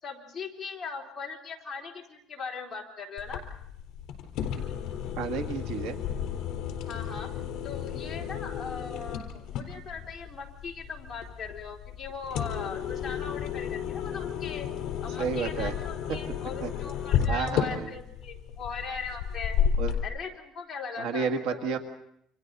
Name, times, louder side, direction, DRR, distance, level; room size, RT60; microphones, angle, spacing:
voice 1, 0.0-3.4 6.9-7.4 7.6-14.7 15.0-19.6 20.0-21.3, left 5 dB, 15° left, -3 dB, 3.7 m, -39 dB
sound 1, 3.2-20.0, left 8 dB, 60° left, 4.1 m, -33 dB
voice 2, 5.2-6.0 15.2-15.7 16.1-16.2 16.6-16.7 17.3-18.0 19.8-19.9 21.0-21.8, right 6 dB, 75° right, 6 dB, 1.8 m, -31 dB
29.5 x 26.0 x 4.1 m, 0.72 s
cardioid pair, 165°, 0 cm